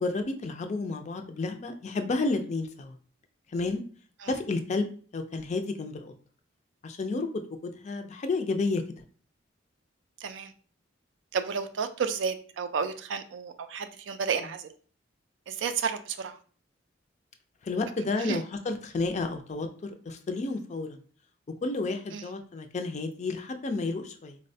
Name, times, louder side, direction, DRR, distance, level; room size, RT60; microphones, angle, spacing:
voice 1, 0.0-2.9 3.5-3.8 4.3-4.9 5.1-6.1 6.8-7.3 7.6-8.8 17.6-19.7 20.1-21.0 21.6-24.4, left 3 dB, 35° left, 7 dB, 0.4 m, -31 dB
voice 2, 10.2-10.5 11.3-14.7 15.5-16.4 18.2-18.4 22.1-22.3, right 6 dB, 70° right, 9 dB, 0.3 m, -32 dB
3.9 x 2.1 x 2.6 m, 0.42 s
head